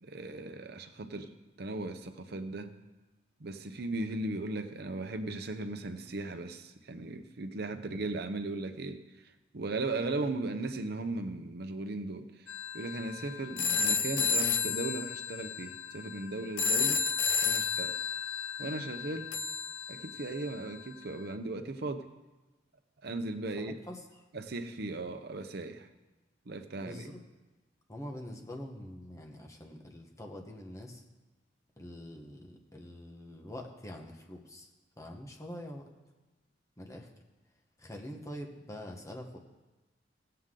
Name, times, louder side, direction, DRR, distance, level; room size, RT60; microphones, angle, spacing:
voice 1, 0.0-2.7 3.4-9.0 9.5-12.4 12.7-17.0 17.4-18.0 18.6-19.3 19.9-22.1 23.0-23.8 24.3-25.9 26.5-27.1, right 2 dB, 55° right, 8 dB, 0.8 m, -37 dB
sound 1, 12.5-20.5, left 5 dB, 75° left, 0.6 m, -32 dB
voice 2, 23.6-24.0 26.8-27.2 27.9-31.0 31.8-34.7 35.0-35.8 36.8-37.1 37.8-39.4, left 1 dB, 15° left, 1 dB, 1.1 m, -45 dB
16.0 x 7.8 x 3.8 m, 1.1 s
head